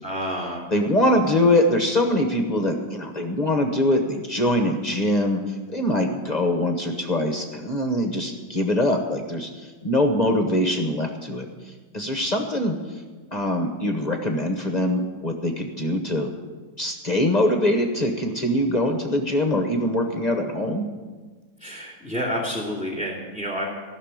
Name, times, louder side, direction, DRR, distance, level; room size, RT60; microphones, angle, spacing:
voice 1, 0.0-0.7 21.6-23.7, equal, 5° left, -3 dB, 2.4 m, -29 dB
voice 2, 0.7-13.0 13.3-16.3 16.8-20.9, left 1 dB, 30° left, 3 dB, 0.9 m, -23 dB
15.0 x 6.6 x 8.8 m, 1.4 s
omnidirectional pair, 1.9 m